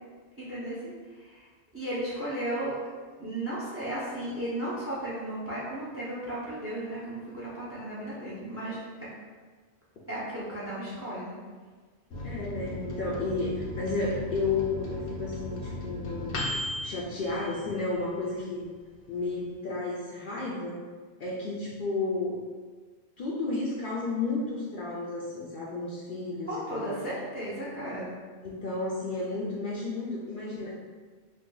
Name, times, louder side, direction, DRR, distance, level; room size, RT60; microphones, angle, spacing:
voice 1, 0.4-1.5 1.7-2.8 3.2-9.1 10.1-11.4 26.5-28.1, right 1 dB, 15° right, -7 dB, 0.5 m, -35 dB
Microwave oven, 12.1-18.2 18.6-18.7 18.9-19.6, left 1 dB, 85° left, 0.9 m, -36 dB
voice 2, 12.2-16.5 16.8-18.7 19.1-20.8 21.2-22.5 23.2-27.0 27.8-27.9 28.4-30.7, left 3 dB, 60° left, -5 dB, 0.6 m, -32 dB
2.7 x 2.5 x 3.8 m, 1.5 s
omnidirectional pair, 1.1 m